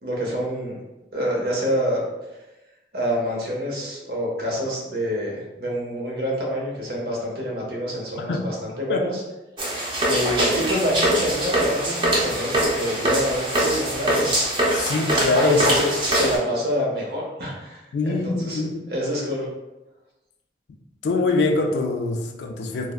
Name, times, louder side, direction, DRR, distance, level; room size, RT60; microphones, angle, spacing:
voice 1, 0.0-0.7 1.1-2.0 2.9-9.2 10.0-14.3 15.4-19.5, equal, 60° right, -3 dB, 0.7 m, -27 dB
sound 1, 9.6-16.4, right 1 dB, 25° right, 0.5 m, -23 dB
voice 2, 14.7-15.6 17.9-18.8 21.0-22.9, left 3 dB, 75° left, 5 dB, 0.3 m, -23 dB
3.3 x 2.0 x 2.3 m, 1.0 s
head